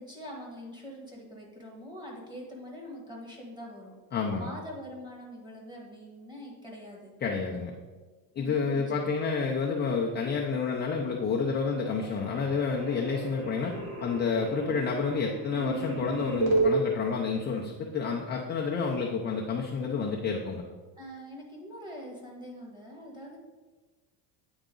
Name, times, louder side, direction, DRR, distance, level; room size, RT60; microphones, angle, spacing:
voice 1, 0.0-3.9 4.3-7.1 8.4-9.1 21.0-23.4, equal, 10° right, -2 dB, 1.5 m, -44 dB
voice 2, 4.1-4.5 7.2-7.7 8.4-13.7 14.0-20.6, left 5 dB, 25° left, -1 dB, 0.5 m, -29 dB
sound 1, 10.8-11.3 11.5-16.7, right 3 dB, 40° right, 1.7 m, -33 dB
9.1 x 4.0 x 3.8 m, 1.3 s
cardioid pair, 145°, 42 cm